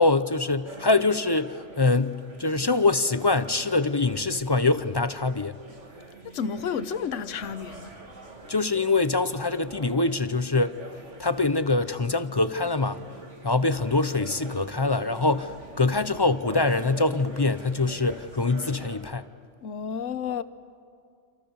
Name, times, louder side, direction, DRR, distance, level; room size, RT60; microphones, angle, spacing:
voice 1, 0.0-5.6 8.5-10.8 11.2-13.0 13.4-19.3, left 3 dB, 30° left, 0.5 m, -24 dB
sound 1, 0.6-19.0, right 2 dB, 80° right, 2.7 m, -45 dB
voice 2, 6.3-8.0 19.6-20.4, left 7 dB, 90° left, 1.2 m, -31 dB
28.0 x 26.5 x 7.0 m
omnidirectional pair, 1.2 m